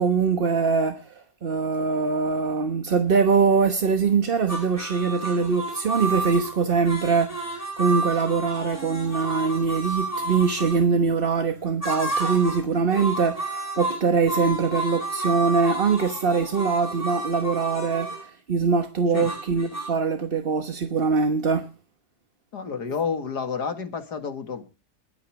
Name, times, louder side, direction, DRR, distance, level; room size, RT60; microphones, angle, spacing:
voice 1, 0.0-21.7, right 5 dB, 40° right, 1.2 m, -23 dB
sound 1, 4.5-10.8 11.8-12.6 12.9-18.3 19.1-19.9, right 2 dB, 10° left, 7.9 m, -31 dB
voice 2, 22.5-24.6, left 5 dB, 80° left, 2.7 m, -30 dB
22.0 x 8.4 x 4.8 m
omnidirectional pair, 1.7 m